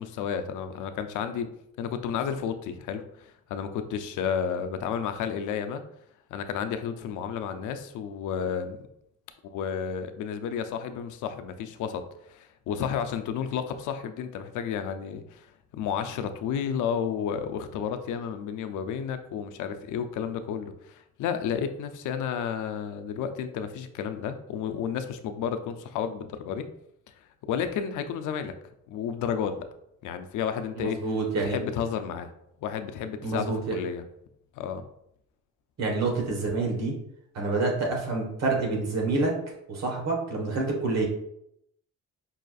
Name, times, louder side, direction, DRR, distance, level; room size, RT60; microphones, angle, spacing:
voice 1, 0.0-1.5 1.8-5.8 6.3-8.8 9.5-15.5 15.7-26.7 27.4-28.5 28.9-29.7 30.0-31.1 31.4-32.3 32.6-34.0 34.6-34.9, left 7 dB, 80° left, 8 dB, 0.5 m, -32 dB
voice 2, 30.8-31.6 33.2-33.8 35.8-36.9 37.3-39.4 39.7-41.1, right 3 dB, 60° right, 0 dB, 1.3 m, -27 dB
5.5 x 2.4 x 2.3 m, 0.76 s
cardioid pair, 90°, 30 cm